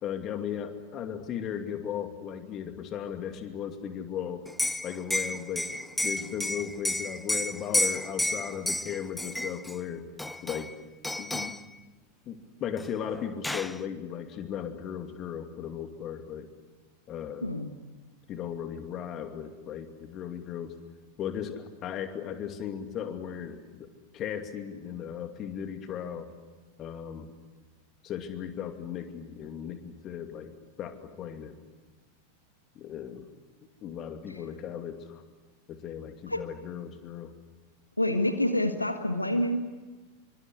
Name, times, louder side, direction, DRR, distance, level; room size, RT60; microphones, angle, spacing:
voice 1, 0.0-4.4 4.8-5.7 6.0-10.0 10.4-10.7 11.2-11.5 12.3-16.5 17.1-17.5 18.3-20.7 21.2-23.9 24.1-26.3 26.8-27.3 28.0-30.5 30.8-31.5 32.7-33.3 33.8-35.2 35.7-37.3, left 9 dB, 30° left, 7 dB, 2.6 m, -36 dB
Liquid, 4.5-9.8 10.2-10.8 11.0-11.6 12.8-12.9 13.2-13.8, left 1 dB, 5° left, 0.8 m, -31 dB
voice 2, 38.0-39.7, left 1 dB, 85° left, 8 dB, 1.6 m, -27 dB
25.5 x 24.5 x 8.5 m, 1.3 s
figure-of-eight pair, 90°, 0 cm